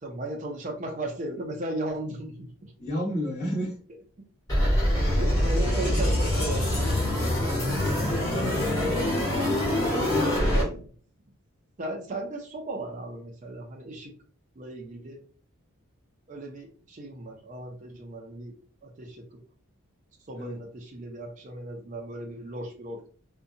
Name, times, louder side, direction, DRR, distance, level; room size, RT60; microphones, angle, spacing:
voice 1, 0.0-2.7 4.2-4.3 5.2-7.0 8.0-8.7 10.5-10.9 11.8-14.1 14.6-15.2 16.3-18.5 18.8-19.4 20.3-23.1, right 1 dB, 35° right, 1 dB, 0.5 m, -36 dB
voice 2, 2.8-3.8 9.8-10.8 20.3-20.6, left 1 dB, 50° left, -6 dB, 1.1 m, -31 dB
sound 1, 4.5-10.6, left 1 dB, 15° left, 1.1 m, -24 dB
2.6 x 2.2 x 2.6 m, 0.44 s
head